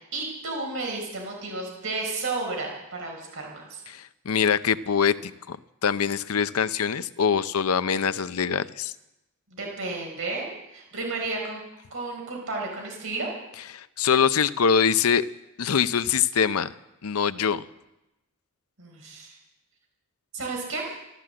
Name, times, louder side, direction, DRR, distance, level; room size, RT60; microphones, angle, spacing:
voice 1, 0.1-3.8 9.5-11.6 11.9-13.3 18.8-19.4 20.3-20.9, right 3 dB, 65° right, -1 dB, 4.5 m, -32 dB
voice 2, 3.9-5.6 5.8-8.9 13.7-15.2 15.6-16.7 17.0-17.6, left 7 dB, 80° left, 13 dB, 0.6 m, -24 dB
14.0 x 13.5 x 7.6 m, 0.93 s
head